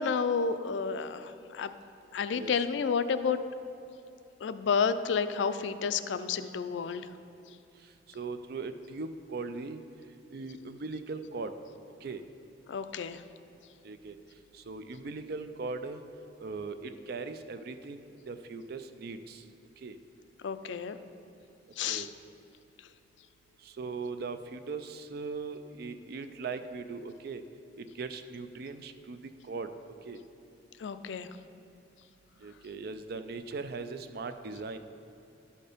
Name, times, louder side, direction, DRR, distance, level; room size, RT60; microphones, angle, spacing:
voice 1, 0.0-1.7 2.1-3.4 4.4-7.1 12.7-13.2 20.4-21.0 21.8-22.1 30.8-31.3, left 6 dB, 75° left, 11 dB, 0.4 m, -30 dB
voice 2, 8.1-9.8 10.3-11.5 12.0-12.2 13.8-14.2 14.5-16.0 16.4-19.4 19.8-20.0 21.9-22.1 23.6-27.4 27.8-29.7 30.0-30.2 32.4-34.8, right 4 dB, 55° right, 9 dB, 0.4 m, -39 dB
12.0 x 4.3 x 5.0 m, 2.7 s
head